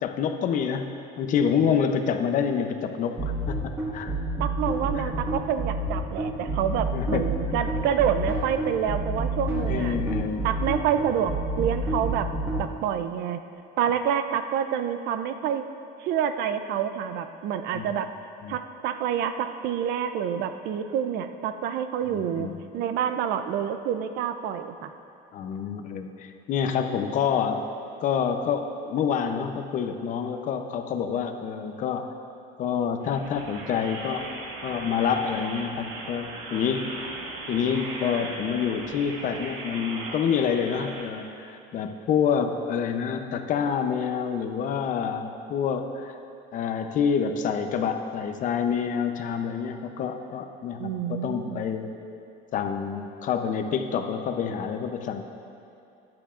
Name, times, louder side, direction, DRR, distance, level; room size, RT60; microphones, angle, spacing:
voice 1, 0.0-4.1 4.9-5.1 6.9-7.7 9.7-10.5 17.7-17.9 18.4-18.6 22.1-22.6 25.3-27.6 28.0-32.1 32.6-34.2 34.6-37.1 37.5-46.2 46.5-51.9 52.5-55.2, left 7 dB, 45° left, 7 dB, 0.7 m, -27 dB
sound 1, 3.2-12.6, right 2 dB, 15° right, 1.8 m, -28 dB
voice 2, 4.4-10.0 10.4-12.3 12.6-13.4 13.8-15.6 16.0-18.1 18.5-24.9 50.8-51.6, right 9 dB, 65° right, 9 dB, 0.5 m, -28 dB
sound 2, 33.0-41.0, right 3 dB, 90° right, 1.4 m, -38 dB
14.0 x 10.5 x 2.5 m, 2.7 s
cardioid pair, 145°, 18 cm